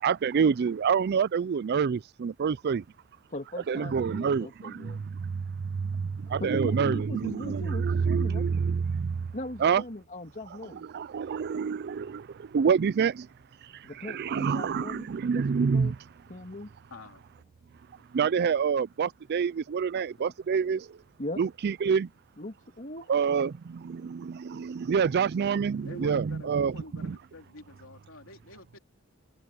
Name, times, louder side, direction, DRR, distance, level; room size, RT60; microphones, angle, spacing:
voice 1, 0.0-2.8 3.7-5.4 5.7-9.3 9.6-9.8 10.9-13.3 14.0-15.9 18.1-20.9 21.4-22.1 23.1-26.7 27.0-27.2, right 6 dB, 50° right, 0.4 m, -27 dB
voice 2, 3.3-5.0 6.3-8.5 9.3-10.9 13.8-15.9 16.3-16.7 21.2-21.4 22.4-23.2, left 1 dB, 35° left, 2.8 m, -39 dB
voice 3, 16.9-17.2 25.8-28.8, left 2 dB, 70° left, 3.9 m, -47 dB
head